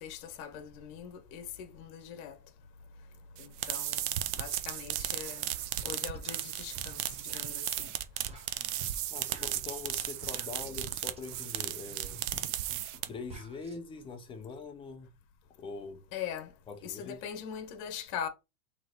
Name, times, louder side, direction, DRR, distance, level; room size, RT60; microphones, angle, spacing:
voice 1, 0.0-2.4 3.4-4.1 4.4-5.4 5.8-7.9 16.1-16.5 16.8-18.3, left 8 dB, 40° left, 1.1 m, -41 dB
sound 1, 3.4-13.3, right 13 dB, 35° right, 0.5 m, -35 dB
sound 2, 5.8-5.9 6.1-13.8, right 3 dB, 15° right, 1.0 m, -51 dB
voice 2, 9.1-12.2 13.1-15.1 15.6-16.0 16.7-17.2, left 4 dB, 10° left, 0.5 m, -43 dB
3.8 x 3.1 x 4.4 m
supercardioid pair, 140°, 45 cm